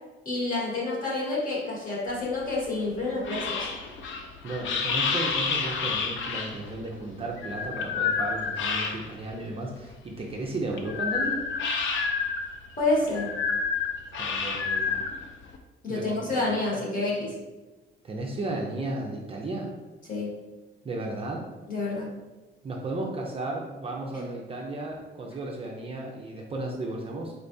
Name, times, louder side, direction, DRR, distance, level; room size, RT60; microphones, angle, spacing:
voice 1, 0.2-3.7 12.8-13.4 15.8-17.4 20.1-20.3 21.7-22.1 24.1-24.2, left 2 dB, 40° left, -5 dB, 1.5 m, -28 dB
sound 1, 2.1-9.3 9.7-15.6, left 5 dB, 65° left, 0.5 m, -29 dB
voice 2, 4.4-11.4 14.2-15.0 15.9-16.5 18.0-19.7 20.8-21.5 22.6-27.3, right 2 dB, 25° right, -1 dB, 0.5 m, -34 dB
4.2 x 3.3 x 2.6 m, 1.1 s
cardioid pair, 145°, 21 cm